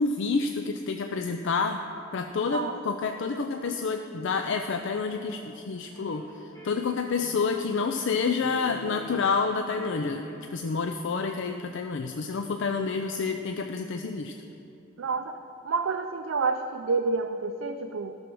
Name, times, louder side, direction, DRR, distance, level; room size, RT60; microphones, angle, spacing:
voice 1, 0.0-1.8 2.1-14.3, left 4 dB, 60° left, 6 dB, 0.4 m, -29 dB
sound 1, 4.7-5.4 5.9-6.3 6.5-8.1 8.4-9.3 9.7-10.6, equal, 15° left, 2.4 m, -48 dB
voice 2, 15.0-18.2, right 4 dB, 65° right, 6 dB, 0.4 m, -29 dB
13.5 x 6.3 x 6.1 m, 2.7 s
head